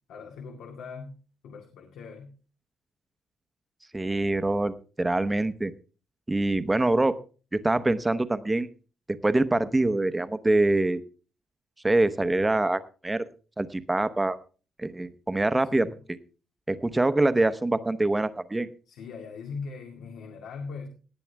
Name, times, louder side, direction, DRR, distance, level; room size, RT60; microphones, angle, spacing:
voice 1, 0.1-1.2 1.4-2.3 15.7-16.0 18.9-20.9, left 5 dB, 90° left, 2 dB, 2.1 m, -40 dB
voice 2, 3.9-5.7 6.3-7.1 7.5-8.7 9.2-11.0 11.8-13.3 13.6-14.4 14.8-15.9 16.7-18.7, right 2 dB, 10° right, 12 dB, 0.8 m, -24 dB
18.0 x 9.9 x 3.5 m, 0.36 s
cardioid pair, 150°, 0 cm